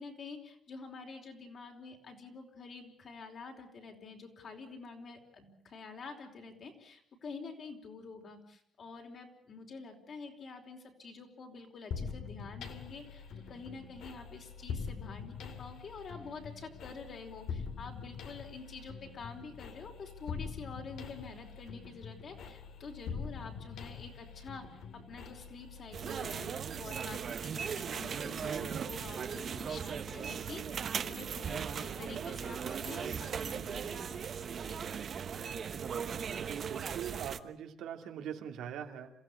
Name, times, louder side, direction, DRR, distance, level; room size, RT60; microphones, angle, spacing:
voice 1, 0.0-26.5 26.8-34.1 34.7-34.9, left 4 dB, 45° left, 3 dB, 4.6 m, -48 dB
sound 1, 11.9-27.5, left 6 dB, 75° left, 2.7 m, -44 dB
sound 2, 25.9-37.4, right 7 dB, 45° right, 1.1 m, -38 dB
voice 2, 36.3-39.1, right 9 dB, 90° right, 4 dB, 2.6 m, -42 dB
27.5 x 16.0 x 8.5 m, 0.69 s
cardioid pair, 140°, 0 cm